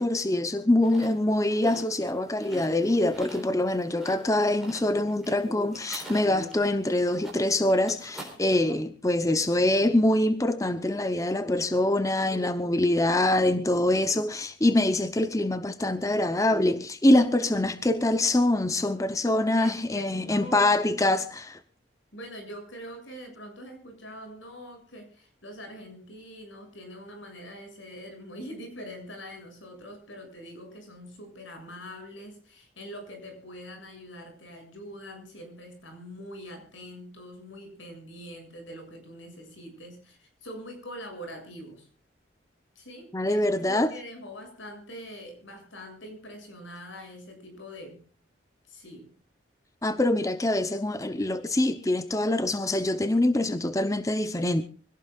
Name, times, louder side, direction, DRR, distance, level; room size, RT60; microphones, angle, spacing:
voice 1, 0.0-21.6 43.1-43.9 49.8-54.6, left 1 dB, 15° left, 0.8 m, -24 dB
sound 1, 0.8-8.4, right 1 dB, ahead, 4.0 m, -47 dB
voice 2, 19.5-20.7 22.1-41.9 42.8-48.0 48.6-49.1, equal, 80° left, 7.2 m, -43 dB
25.0 x 17.0 x 2.4 m
head